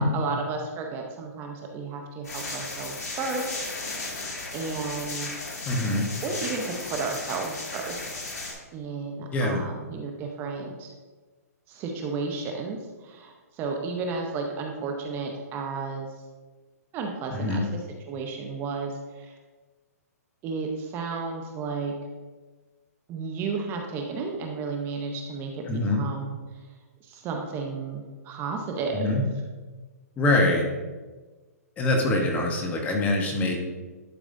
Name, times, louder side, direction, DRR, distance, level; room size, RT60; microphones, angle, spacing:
voice 1, 0.0-3.6 4.0-4.1 4.5-5.3 6.2-10.9 11.7-16.1 16.9-17.8 18.1-19.3 20.4-21.9 23.1-26.4 27.0-29.4, right 4 dB, 25° right, 3 dB, 0.7 m, -33 dB
sound 1, 2.2-8.5, left 2 dB, 75° left, 2.1 m, -35 dB
voice 2, 5.7-6.0 9.3-9.6 17.4-17.6 25.7-26.0 28.9-29.2 30.2-30.7 31.8-33.7, left 2 dB, 15° left, 2 dB, 1.0 m, -24 dB
11.0 x 4.8 x 2.6 m, 1.3 s
hypercardioid pair, 140°, 9 cm